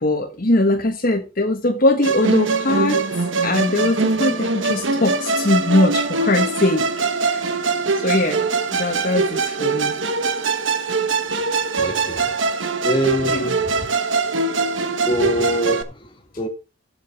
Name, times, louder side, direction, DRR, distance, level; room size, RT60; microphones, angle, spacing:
voice 1, 0.0-3.0 3.4-7.5 7.9-8.4 8.7-10.0 13.2-13.6, left 1 dB, 45° left, 1.3 m, -21 dB
Musical instrument, 2.0-15.8, right 3 dB, 75° right, 1.2 m, -22 dB
voice 2, 11.8-12.3 12.8-13.9 15.1-16.5, equal, 25° left, 2.3 m, -24 dB
8.0 x 7.9 x 6.0 m
head